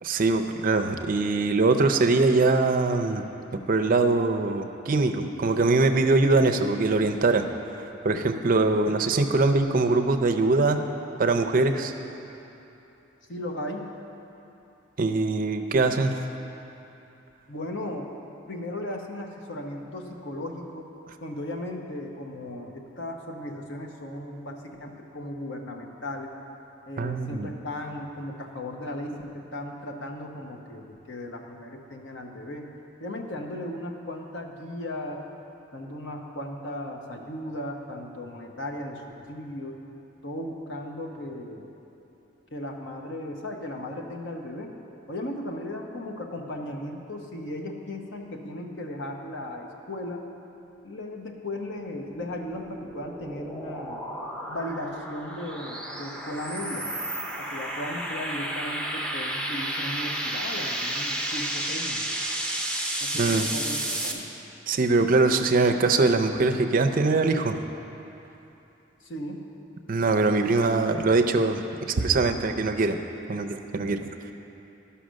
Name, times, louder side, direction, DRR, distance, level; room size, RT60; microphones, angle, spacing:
voice 1, 0.0-3.2 3.5-7.5 7.8-10.8 11.2-11.9 15.0-16.2 27.0-27.5 63.2-63.5 64.7-67.6 69.9-71.6 72.0-73.0 73.3-74.1, right 3 dB, 45° right, 6 dB, 0.4 m, -22 dB
voice 2, 13.3-13.9 17.5-18.2 18.5-20.9 21.2-26.3 26.9-32.7 33.0-35.2 35.7-39.8 40.2-41.7 42.5-44.7 45.1-50.2 50.8-54.0 54.5-56.9 57.4-62.2 63.0-64.3 69.0-69.4, left 1 dB, 60° left, 1 dB, 1.0 m, -36 dB
sound 1, 52.1-64.1, right 1 dB, 5° left, 0.6 m, -32 dB
11.5 x 5.7 x 6.3 m, 2.9 s
head